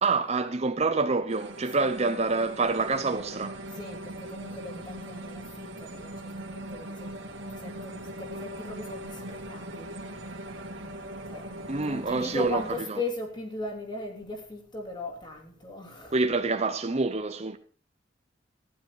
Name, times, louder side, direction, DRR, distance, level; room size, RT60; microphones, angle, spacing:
voice 1, 0.0-3.6 11.7-12.6 12.9-13.0 16.1-17.6, right 3 dB, 35° right, 0.9 m, -27 dB
sound 1, 1.3-12.8, right 1 dB, 85° right, 2.7 m, -40 dB
voice 2, 3.7-7.2 7.5-9.9 11.3-11.4 11.8-16.2, left 2 dB, 25° left, 3.2 m, -38 dB
15.0 x 10.5 x 4.9 m
head